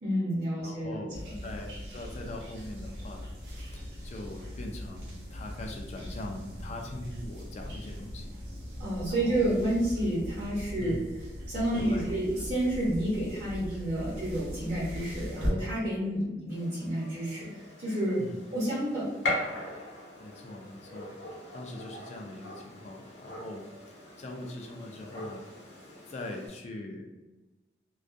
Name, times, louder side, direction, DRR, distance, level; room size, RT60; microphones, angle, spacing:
voice 1, 0.0-1.0 1.2-1.3 8.8-11.0 11.5-18.2 18.5-19.1, right 1 dB, 45° right, -10 dB, 0.9 m, -30 dB
voice 2, 0.6-3.3 3.6-8.3 9.1-9.5 10.8-11.0 11.7-12.2 18.2-18.4 20.2-21.1 21.5-25.5 26.1-27.0, left 1 dB, 40° left, 1 dB, 0.3 m, -42 dB
sound 1, 1.1-15.5, equal, 75° right, 0.7 m, -39 dB
Gunshot gunfire, 16.5-26.5, left 1 dB, 80° left, 0.7 m, -40 dB
2.3 x 2.1 x 2.5 m, 1.1 s
head